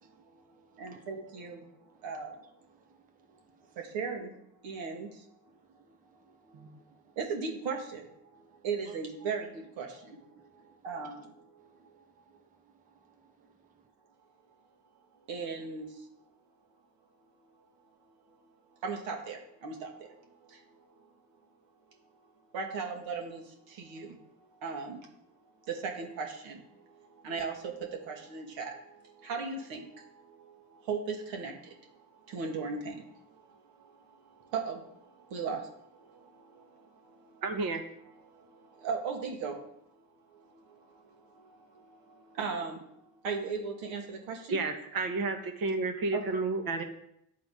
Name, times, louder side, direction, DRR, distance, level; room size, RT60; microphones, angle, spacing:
voice 1, 0.2-2.5 3.7-4.3 4.6-5.2 6.5-6.7 7.2-12.0 15.3-16.1 18.8-20.9 22.5-25.1 25.6-37.4 38.2-39.7 40.3-42.8 43.2-44.6 46.1-46.2, right 5 dB, 70° right, 2 dB, 1.3 m, -39 dB
voice 2, 2.7-3.8 4.6-4.8 5.5-7.2 8.3-9.0 10.4-10.9 11.6-13.9, right 5 dB, 20° right, 5 dB, 0.6 m, -64 dB
voice 3, 37.4-37.8 44.5-46.8, right 3 dB, 45° right, 6 dB, 1.1 m, -31 dB
9.4 x 3.8 x 3.6 m, 0.77 s
hypercardioid pair, 60°, 48 cm